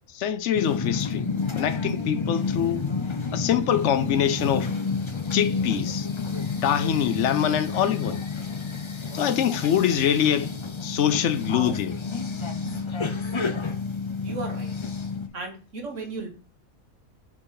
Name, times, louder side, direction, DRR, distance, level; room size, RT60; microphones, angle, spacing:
voice 1, 0.1-1.3 1.6-2.8 3.3-4.7 5.3-6.1 6.6-8.2 9.1-10.5 10.8-12.0, left 9 dB, 60° left, 1.0 m, -24 dB
sound 1, 0.5-15.3, left 4 dB, 35° left, 0.4 m, -30 dB
voice 2, 14.2-14.7 15.3-16.3, right 3 dB, 60° right, 2.0 m, -35 dB
5.9 x 5.3 x 4.0 m
omnidirectional pair, 1.5 m